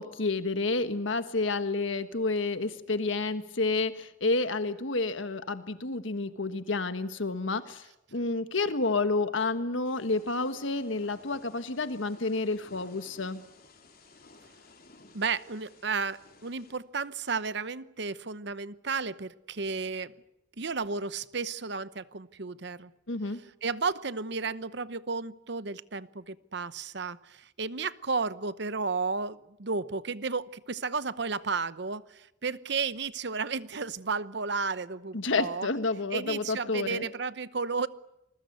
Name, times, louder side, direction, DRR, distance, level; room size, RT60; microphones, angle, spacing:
voice 1, 0.0-7.8 8.1-13.4 23.1-23.4 35.1-37.1, left 3 dB, 75° left, 10 dB, 1.5 m, -30 dB
Thunder / Rain, 9.8-16.7, left 3 dB, 50° left, 4.1 m, -55 dB
voice 2, 15.1-20.1 20.6-22.9 23.3-35.7 36.1-37.9, right 4 dB, 60° right, 15 dB, 0.9 m, -33 dB
28.0 x 21.0 x 8.2 m, 0.88 s
head